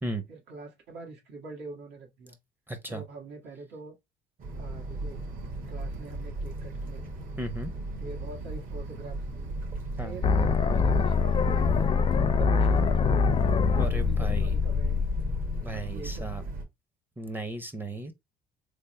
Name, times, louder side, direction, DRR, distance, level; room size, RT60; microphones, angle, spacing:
voice 1, 0.3-2.4 2.9-3.9 4.5-5.2 5.7-7.1 8.0-9.5 10.0-11.9 12.3-13.2 13.7-15.0 15.6-16.6, right 3 dB, 80° right, 1.4 m, -44 dB
voice 2, 2.7-3.0 7.4-7.7 10.0-10.2 13.8-14.5 15.6-16.4 17.2-18.1, right 1 dB, 10° right, 0.6 m, -35 dB
sound 1, 4.4-16.6, right 2 dB, 55° right, 1.3 m, -36 dB
sound 2, 10.2-16.2, left 5 dB, 30° left, 0.5 m, -24 dB
3.4 x 2.1 x 4.2 m
cardioid pair, 110°, 17 cm